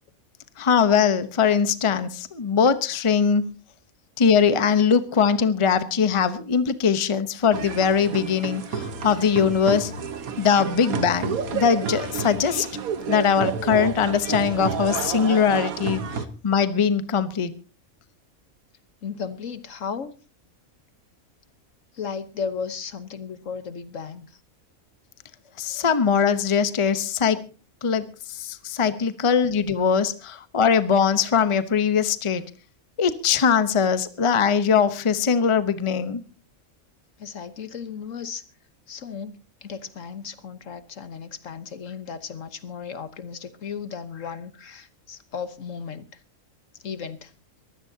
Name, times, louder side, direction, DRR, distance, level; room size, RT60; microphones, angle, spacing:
voice 1, 0.6-3.5 4.2-9.9 10.4-12.7 13.1-17.5 25.6-27.4 27.8-32.4 33.0-36.2, left 6 dB, 25° left, 12 dB, 0.8 m, -21 dB
sound 1, 7.5-16.3, right 6 dB, 90° right, 1.6 m, -30 dB
voice 2, 19.0-20.1 21.9-24.4 28.9-29.0 37.2-38.4 38.9-39.4 39.6-46.1 46.8-47.3, left 6 dB, 65° left, 12 dB, 1.4 m, -35 dB
22.5 x 16.0 x 2.8 m, 0.34 s
omnidirectional pair, 1.5 m